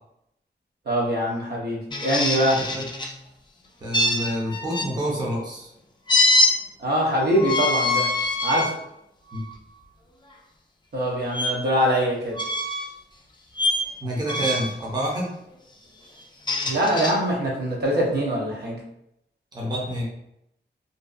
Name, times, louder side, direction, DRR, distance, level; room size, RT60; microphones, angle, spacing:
voice 1, 0.9-2.6 6.8-8.1 8.4-8.7 10.9-12.4 16.7-18.8, equal, 60° right, -3 dB, 0.7 m, -23 dB
sound 1, 1.9-3.1 3.9-4.9 6.1-6.5 7.4-8.7 9.3-9.5 11.3-11.5 12.3-12.9 13.5-13.9 14.3-14.8 16.2-17.1, left 2 dB, 25° left, 0.3 m, -23 dB
voice 2, 3.8-5.7 9.3-9.4 14.0-15.3 19.5-20.0, equal, 20° right, -4 dB, 0.6 m, -28 dB
2.6 x 2.3 x 2.4 m, 0.78 s
wide cardioid pair, 150°, 19 cm